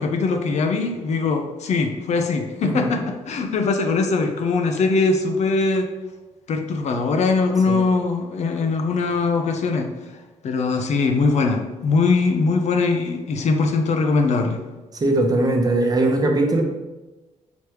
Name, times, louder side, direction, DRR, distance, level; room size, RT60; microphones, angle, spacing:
voice 1, 0.0-5.9 6.5-9.9 10.4-14.6, left 4 dB, 60° left, 4 dB, 0.6 m, -21 dB
voice 2, 15.0-16.6, right 2 dB, 30° right, 2 dB, 0.8 m, -20 dB
5.1 x 3.1 x 3.1 m, 1.1 s
cardioid pair, 75°, 13 cm